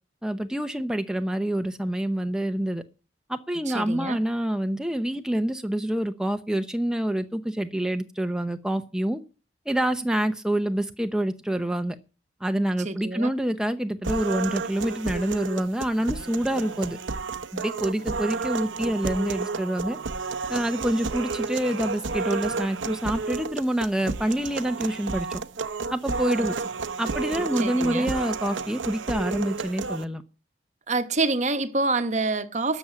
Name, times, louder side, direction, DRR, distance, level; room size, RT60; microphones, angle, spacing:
voice 1, 0.2-2.8 3.3-9.2 9.7-12.0 12.4-17.0 17.5-20.0 20.5-25.4 25.9-26.5 27.0-30.2, right 1 dB, 5° right, 0.6 m, -27 dB
voice 2, 3.7-4.2 12.8-13.3 26.4-26.5 27.6-28.1 30.9-32.8, right 3 dB, 40° right, 1.0 m, -27 dB
sound 1, 14.0-30.0, right 4 dB, 90° right, 0.8 m, -31 dB
13.0 x 7.1 x 9.0 m
head